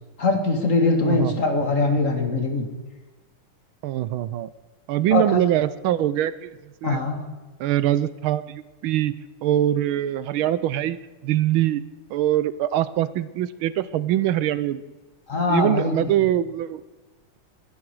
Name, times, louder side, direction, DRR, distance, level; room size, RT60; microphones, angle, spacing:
voice 1, 0.2-2.7 5.1-5.4 6.8-7.2 15.3-15.9, left 3 dB, 40° left, 4 dB, 2.3 m, -22 dB
voice 2, 1.0-1.4 3.8-4.5 4.9-7.0 7.6-9.1 9.4-11.0 11.2-11.8 12.1-14.8 15.5-16.8, right 12 dB, 80° right, 16 dB, 1.5 m, -23 dB
21.0 x 11.5 x 4.7 m, 1.2 s
omnidirectional pair, 2.3 m